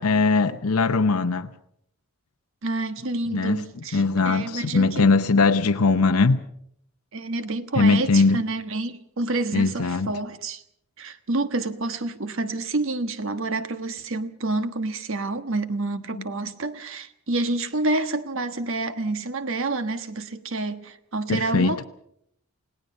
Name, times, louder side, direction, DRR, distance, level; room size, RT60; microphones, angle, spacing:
voice 1, 0.0-1.5 3.3-3.6 3.9-6.4 7.7-8.4 9.5-10.1 16.1-16.2 21.3-21.8, left 4 dB, 85° left, 0.8 m, -20 dB
voice 2, 2.6-5.1 7.1-10.6 11.0-21.9, right 2 dB, 60° right, 1.3 m, -28 dB
29.0 x 18.0 x 5.5 m
head